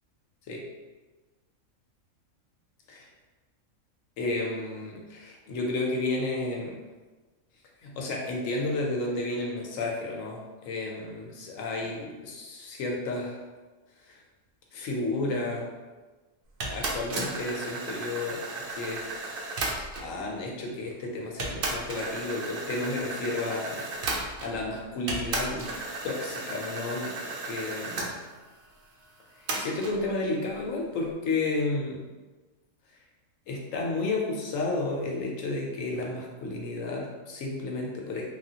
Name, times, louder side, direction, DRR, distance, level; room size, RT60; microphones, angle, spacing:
voice 1, 4.2-6.8 7.8-13.4 14.0-14.2 14.7-15.7 16.6-18.4 18.7-19.0 19.9-25.7 26.0-28.2 29.4-32.1 32.9-33.0 33.5-38.3, left 2 dB, 75° left, -1 dB, 1.0 m, -32 dB
sound 1, 16.6-20.2 20.9-21.0 21.4-24.7 25.1-28.1 29.5-30.0, right 2 dB, 60° right, 0.6 m, -34 dB
3.1 x 2.4 x 2.7 m, 1.3 s
omnidirectional pair, 1.4 m